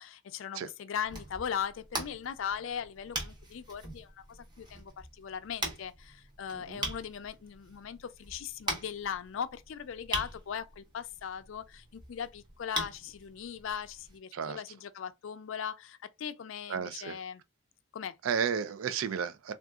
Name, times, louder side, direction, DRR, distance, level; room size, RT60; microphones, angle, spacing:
voice 1, 0.0-17.4 17.9-18.2, left 8 dB, 70° left, 0.4 m, -39 dB
sound 1, 0.9-14.2, right 1 dB, 20° right, 0.8 m, -42 dB
voice 2, 6.5-6.8 14.3-14.6 16.7-17.2 18.2-19.5, right 7 dB, 75° right, 0.4 m, -33 dB
3.7 x 2.4 x 2.3 m
head